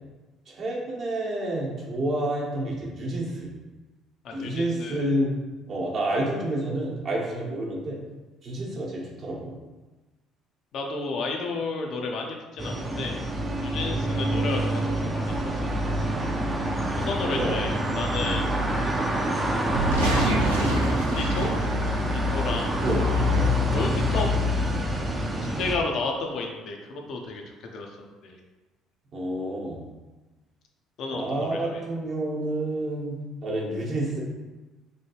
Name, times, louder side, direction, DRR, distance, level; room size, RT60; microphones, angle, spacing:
voice 1, 0.5-3.5 4.3-5.3 5.7-8.0 8.4-9.5 13.9-14.0 16.9-17.6 22.6-23.0 23.3-23.6 29.1-29.8 31.1-34.2, right 1 dB, 50° right, -4 dB, 0.9 m, -29 dB
voice 2, 4.2-5.0 10.7-13.2 13.6-15.5 15.8-15.9 17.1-19.0 20.0-20.4 21.1-21.5 22.1-22.8 23.7-24.3 25.4-27.4 27.7-27.9 28.2-28.4 31.0-31.8, left 3 dB, 60° left, 1 dB, 0.5 m, -32 dB
sound 1, 12.6-25.8, equal, 25° right, 0.5 m, -26 dB
sound 2, 19.6-22.2 22.6-23.8, right 2 dB, 90° right, 0.4 m, -28 dB
3.1 x 2.3 x 2.9 m, 1.2 s
hypercardioid pair, 55°, 0 cm